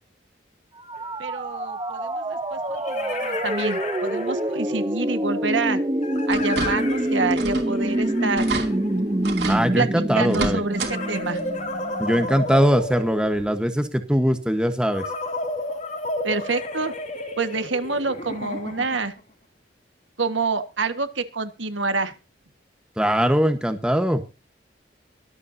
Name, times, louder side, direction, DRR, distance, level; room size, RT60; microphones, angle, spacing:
sound 1, 0.8-12.6, right 1 dB, 20° right, 0.9 m, -26 dB
sound 2, 0.9-1.0 2.4-4.8 6.0-9.5 10.7-13.7 14.9-19.2, left 2 dB, 40° left, 2.7 m, -33 dB
voice 1, 1.2-5.8 6.3-8.5 9.7-9.9 10.1-11.4 16.2-16.9 17.4-19.1 20.2-22.1, right 3 dB, 85° right, 9 dB, 1.6 m, -27 dB
sound 3, 6.3-7.0 7.3-7.7 8.0-8.1 8.4-8.7 9.2-9.6 10.2-10.9 11.3-11.4 12.8-12.9 13.4-13.5, right 4 dB, 65° right, 2.9 m, -29 dB
voice 2, 9.5-10.6 12.0-15.1 23.0-24.2, equal, 5° right, 7 dB, 1.2 m, -21 dB
23.5 x 8.6 x 2.8 m, 0.30 s
head